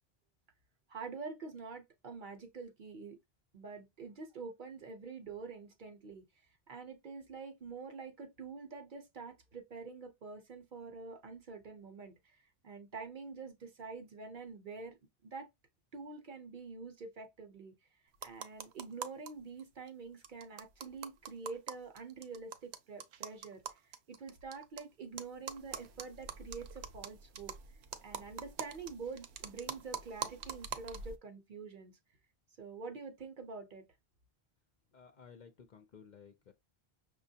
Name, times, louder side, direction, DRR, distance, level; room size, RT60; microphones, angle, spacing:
voice 1, 0.9-3.2 3.5-6.2 6.7-15.0 15.2-15.5 15.9-17.7 18.2-23.8 24.1-27.5 28.0-31.9 32.6-33.9, right 4 dB, 55° right, 0.8 m, -46 dB
sound 1, 18.1-19.3 19.6-19.7 19.9-20.0 20.2-24.8 25.2-31.2, right 8 dB, 85° right, 0.9 m, -44 dB
voice 2, 34.9-36.5, left 6 dB, 55° left, 0.6 m, -56 dB
5.8 x 2.2 x 2.7 m
omnidirectional pair, 1.1 m